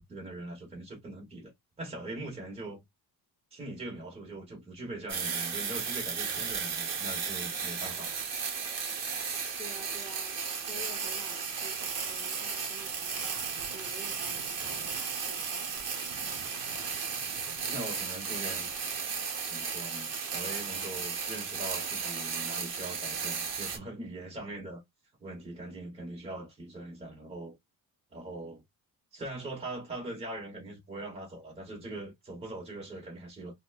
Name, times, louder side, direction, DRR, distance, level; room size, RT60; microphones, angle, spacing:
voice 1, 0.1-1.5 1.8-2.8 3.5-8.2 16.8-17.0 17.7-18.7 19.5-24.8 25.2-27.6 28.1-28.6 29.1-33.5, right 2 dB, 15° right, 1.2 m, -41 dB
sound 1, 5.1-23.8, right 6 dB, 40° right, 1.0 m, -35 dB
voice 2, 9.6-16.1, equal, 10° left, 0.8 m, -50 dB
3.9 x 2.2 x 2.4 m
cardioid pair, 170°, 38 cm